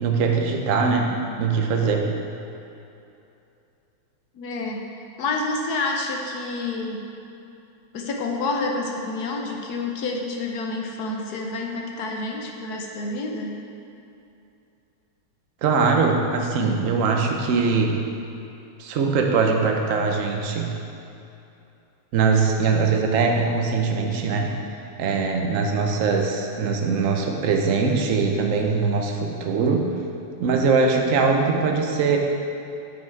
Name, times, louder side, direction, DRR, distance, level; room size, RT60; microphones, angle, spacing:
voice 1, 0.0-2.1 15.6-18.0 18.8-20.7 22.1-24.5 25.0-29.9 30.4-32.2, right 4 dB, 60° right, 2 dB, 0.8 m, -21 dB
voice 2, 4.3-4.9 5.2-7.1 7.9-13.6, left 3 dB, 60° left, 1 dB, 1.2 m, -28 dB
9.1 x 5.8 x 4.6 m, 2.8 s
omnidirectional pair, 2.2 m